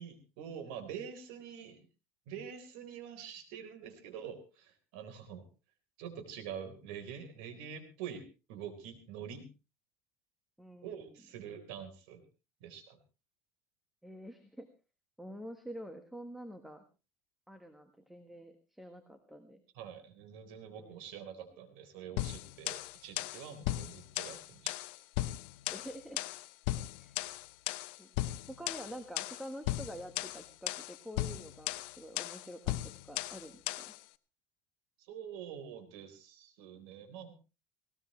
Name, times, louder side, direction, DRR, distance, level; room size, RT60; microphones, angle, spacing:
voice 1, 0.0-1.8 2.3-5.5 6.0-9.5 10.8-12.2 12.6-13.0 19.7-24.8 35.1-37.3, right 8 dB, 80° right, 8 dB, 3.9 m, -46 dB
voice 2, 10.6-11.2 14.0-14.7 15.2-16.8 17.5-19.6 20.8-21.0 25.7-26.2 27.0-27.2 28.0-28.1 28.5-33.8, equal, 5° right, 8 dB, 1.4 m, -47 dB
sound 1, 22.2-34.0, left 16 dB, 80° left, 0.8 m, -37 dB
19.0 x 17.5 x 3.2 m, 0.31 s
cardioid pair, 140°, 6 cm